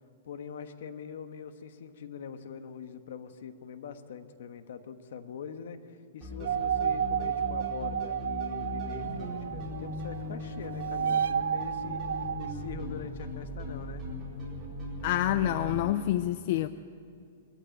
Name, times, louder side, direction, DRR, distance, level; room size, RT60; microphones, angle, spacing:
voice 1, 0.2-14.0, left 7 dB, 65° left, 9 dB, 1.2 m, -43 dB
sound 1, 6.2-15.8, left 1 dB, 15° right, 4.3 m, -39 dB
sound 2, 6.4-10.3 10.5-12.5, right 8 dB, 80° right, 0.5 m, -31 dB
voice 2, 15.0-16.7, left 13 dB, 40° left, 12 dB, 0.4 m, -27 dB
20.5 x 14.0 x 9.1 m, 2.5 s
supercardioid pair, 175°, 0 cm